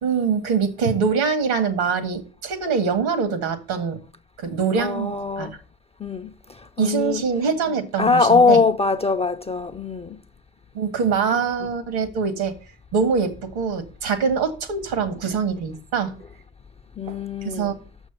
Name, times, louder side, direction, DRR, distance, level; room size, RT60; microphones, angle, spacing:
voice 1, 0.0-4.0 4.4-5.5 6.8-8.6 10.7-12.6 12.9-16.1 17.1-17.7, right 5 dB, 80° right, 1.8 m, -24 dB
voice 2, 4.8-5.5 6.0-6.3 6.8-7.3 8.0-10.2 11.6-11.7 17.0-17.8, left 4 dB, 15° left, 0.3 m, -21 dB
6.6 x 6.1 x 6.8 m
supercardioid pair, 85°, 47 cm